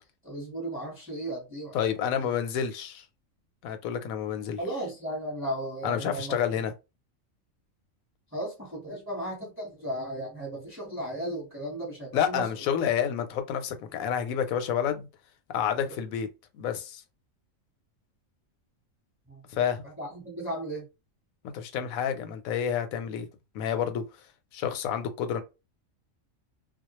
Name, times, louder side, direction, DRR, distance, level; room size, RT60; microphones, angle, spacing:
voice 1, 0.2-1.8 4.6-6.4 8.3-12.5 19.3-19.4 19.8-20.9, right 1 dB, 10° right, 0.9 m, -35 dB
voice 2, 1.7-3.0 3.6-4.6 5.8-6.7 12.1-15.1 15.5-16.3 16.5-17.0 19.5-19.8 21.5-23.3 23.5-24.0 24.5-25.4, left 8 dB, 90° left, 1.0 m, -29 dB
2.3 x 2.0 x 2.9 m
omnidirectional pair, 1.4 m